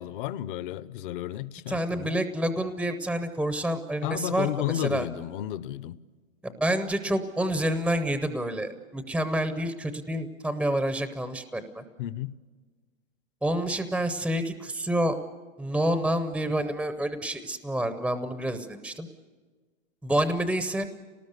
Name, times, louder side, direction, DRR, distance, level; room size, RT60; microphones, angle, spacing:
voice 1, 0.0-2.2 4.0-5.9 12.0-12.3, left 13 dB, 40° left, 0.7 m, -32 dB
voice 2, 1.7-5.1 6.4-11.8 13.4-15.2 15.6-19.1 20.0-20.9, right 1 dB, ahead, 0.6 m, -28 dB
27.5 x 19.0 x 6.6 m
hypercardioid pair, 140°, 39 cm